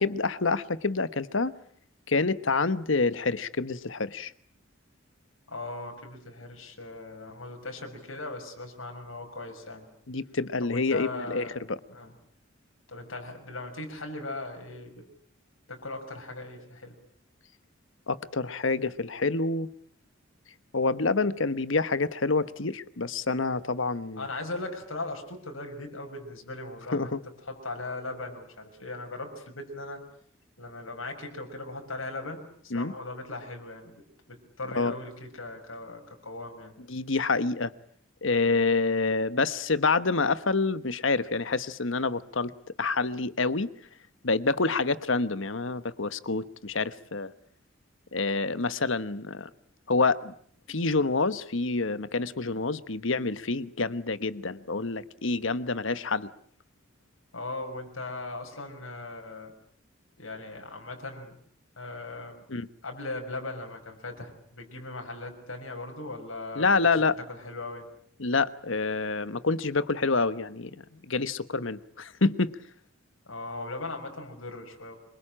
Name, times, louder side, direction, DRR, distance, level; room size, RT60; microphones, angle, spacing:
voice 1, 0.0-1.5 2.1-4.3 10.1-11.8 18.1-19.7 20.7-24.2 26.9-27.2 32.7-32.9 34.7-34.9 36.9-37.7 38.2-42.5 42.8-43.7 44.2-47.3 48.1-49.5 49.9-50.3 50.7-56.3 62.5-62.7 66.6-67.2 68.2-72.6, left 3 dB, 75° left, 14 dB, 1.2 m, -27 dB
voice 2, 5.5-9.9 10.6-11.6 11.9-12.1 12.9-15.0 15.7-16.9 24.2-27.1 27.5-30.0 30.6-36.7 57.3-59.5 60.2-61.3 61.8-62.5 62.8-67.0 67.3-67.8 73.3-75.0, left 2 dB, 90° left, 3 dB, 5.9 m, -39 dB
26.0 x 23.5 x 8.8 m, 0.62 s
head